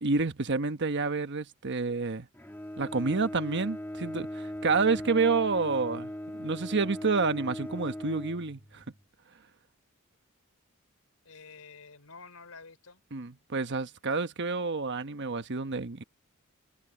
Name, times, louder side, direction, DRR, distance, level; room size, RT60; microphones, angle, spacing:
voice 1, 0.0-2.3 2.8-6.1 6.4-8.8 13.1-16.0, right 4 dB, 55° right, 1.1 m, -29 dB
Bowed string instrument, 2.3-9.0, equal, 10° left, 2.1 m, -39 dB
voice 2, 11.2-13.0, left 4 dB, 80° left, 3.8 m, -49 dB
head